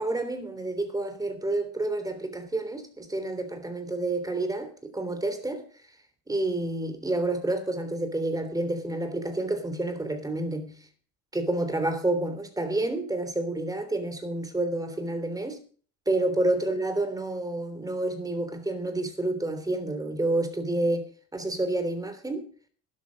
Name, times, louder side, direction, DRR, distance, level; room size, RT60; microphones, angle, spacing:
voice 1, 0.0-5.6 6.3-10.8 11.3-15.6 16.1-22.5, right 2 dB, 10° right, 3.2 m, -29 dB
12.5 x 11.0 x 5.2 m
cardioid pair, 120°, 33 cm